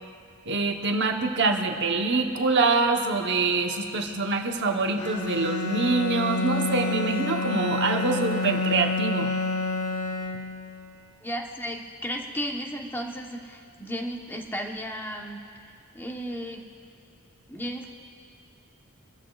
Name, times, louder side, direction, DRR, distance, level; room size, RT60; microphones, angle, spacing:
voice 1, 0.5-9.3, right 3 dB, 50° right, 3 dB, 1.0 m, -25 dB
Bowed string instrument, 5.0-10.8, left 3 dB, 80° left, 1.2 m, -28 dB
voice 2, 11.2-15.4 15.9-16.6 17.5-17.9, equal, 10° left, 1 dB, 1.0 m, -34 dB
25.5 x 14.5 x 2.4 m, 2.6 s
head